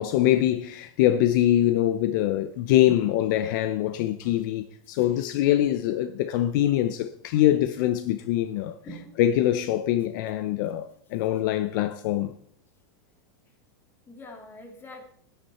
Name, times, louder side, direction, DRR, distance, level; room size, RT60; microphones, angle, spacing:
voice 1, 0.0-8.8 9.2-12.3, left 13 dB, 55° left, 0.7 m, -24 dB
voice 2, 8.8-9.2 14.1-15.0, left 1 dB, 20° left, 2.6 m, -44 dB
13.5 x 10.0 x 4.3 m
supercardioid pair, 145°, 12 cm